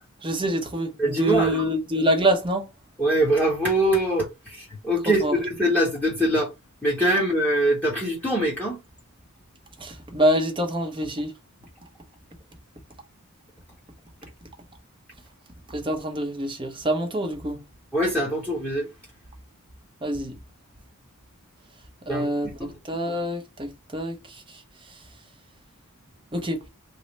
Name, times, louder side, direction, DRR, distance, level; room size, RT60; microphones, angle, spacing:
voice 1, 0.2-2.7 5.1-5.4 9.8-11.3 15.7-17.6 20.0-20.4 22.1-24.6 26.3-26.6, right 1 dB, 25° right, 0.7 m, -26 dB
voice 2, 1.0-1.7 3.0-6.5 6.8-8.8 17.9-18.9 22.1-22.3 22.6-22.7, right 1 dB, 5° left, 1.0 m, -23 dB
3.2 x 2.0 x 3.9 m
head